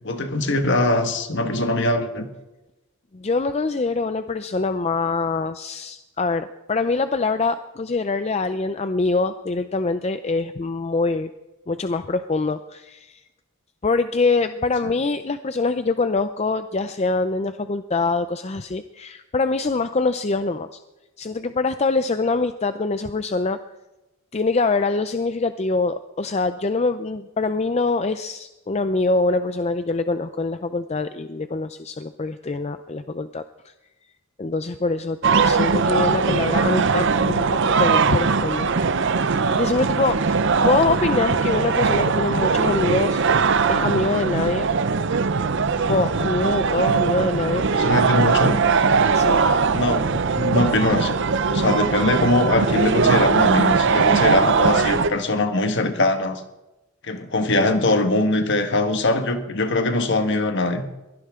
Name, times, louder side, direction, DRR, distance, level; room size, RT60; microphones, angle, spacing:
voice 1, 0.0-2.3 36.3-36.5 47.6-48.7 49.7-51.1 51.5-56.4 57.0-60.9, left 2 dB, 55° left, 7 dB, 1.5 m, -22 dB
voice 2, 3.1-11.3 11.7-13.2 13.8-20.8 21.2-23.6 24.3-33.4 34.4-38.7 39.2-43.2 43.7-44.7 45.9-47.7 49.1-49.4, left 3 dB, 30° left, 10 dB, 0.5 m, -24 dB
sound 1, 35.2-55.1, right 5 dB, 55° right, 0.6 m, -20 dB
22.5 x 16.5 x 3.7 m, 1.0 s
head